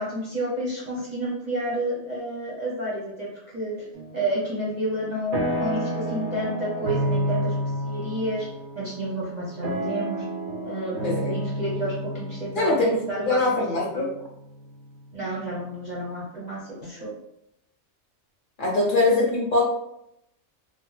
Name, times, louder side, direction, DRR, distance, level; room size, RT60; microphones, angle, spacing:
voice 1, 0.0-3.3 3.5-3.8 4.1-8.4 8.7-10.3 10.6-14.0 15.1-17.1, right 1 dB, 45° right, -6 dB, 0.6 m, -30 dB
sound 1, 3.9-4.5 4.9-14.9, equal, 90° right, 1.1 m, -30 dB
voice 2, 12.6-14.1 18.6-19.6, left 2 dB, 45° left, -3 dB, 0.8 m, -22 dB
2.8 x 2.0 x 3.1 m, 0.79 s
omnidirectional pair, 1.5 m